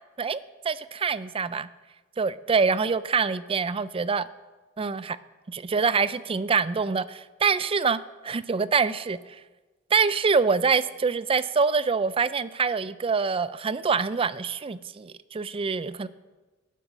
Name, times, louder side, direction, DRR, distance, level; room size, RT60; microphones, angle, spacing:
voice 1, 0.2-1.7 2.2-4.3 4.8-5.2 5.5-9.4 9.9-16.1, right 5 dB, 25° right, 16 dB, 0.4 m, -25 dB
12.0 x 10.0 x 6.1 m, 1.2 s
head